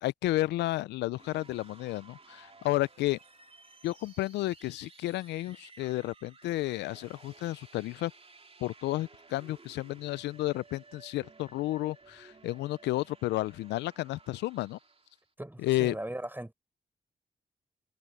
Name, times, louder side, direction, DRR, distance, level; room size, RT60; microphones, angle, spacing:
voice 1, 0.0-3.2 3.8-8.1 8.6-14.8 15.6-15.9, left 17 dB, 85° left, 0.4 m, -32 dB
sound 1, 1.1-15.3, right 3 dB, 35° right, 2.8 m, -56 dB
voice 2, 15.4-16.5, right 1 dB, 10° right, 5.7 m, -38 dB
supercardioid pair, 45°, 17 cm